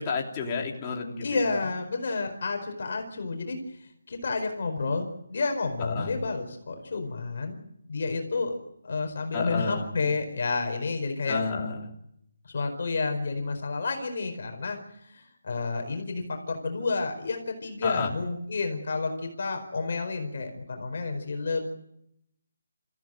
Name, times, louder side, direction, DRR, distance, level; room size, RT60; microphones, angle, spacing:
voice 1, 0.0-1.7 5.9-6.2 9.3-9.9 11.3-11.9 17.8-18.1, left 4 dB, 20° left, -1 dB, 3.1 m, -31 dB
voice 2, 1.2-7.6 7.8-8.6 8.8-11.4 12.4-14.8 15.0-21.7, left 3 dB, 50° left, 4 dB, 4.6 m, -30 dB
27.5 x 15.0 x 9.1 m, 0.78 s
hypercardioid pair, 170°, 0 cm